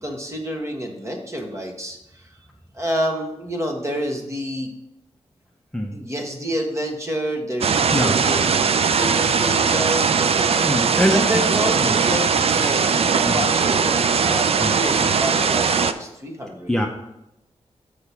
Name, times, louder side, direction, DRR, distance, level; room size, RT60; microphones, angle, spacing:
voice 1, 0.0-2.2 2.7-4.7 5.9-10.1 11.1-14.0 14.2-16.7, equal, 25° right, 2 dB, 1.4 m, -28 dB
sound 1, 7.6-15.9, right 5 dB, 60° right, 0.5 m, -19 dB
voice 2, 10.6-11.2 11.8-11.9 13.3-13.4 14.6-14.8 16.7-16.9, equal, 5° left, 1 dB, 0.7 m, -22 dB
6.7 x 4.8 x 5.6 m, 0.87 s
wide cardioid pair, 90°, 11 cm